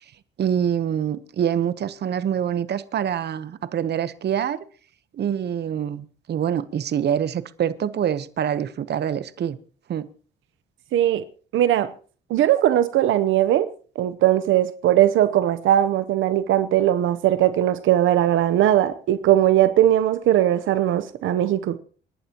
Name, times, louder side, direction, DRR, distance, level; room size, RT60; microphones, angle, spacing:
voice 1, 0.4-4.6 5.1-9.6 9.9-10.1, right 9 dB, 55° right, 1.0 m, -25 dB
voice 2, 10.9-11.2 11.5-11.9 12.3-13.7 14.0-21.8, right 12 dB, 80° right, 0.9 m, -19 dB
28.5 x 11.5 x 3.0 m
cardioid pair, 90°, 20 cm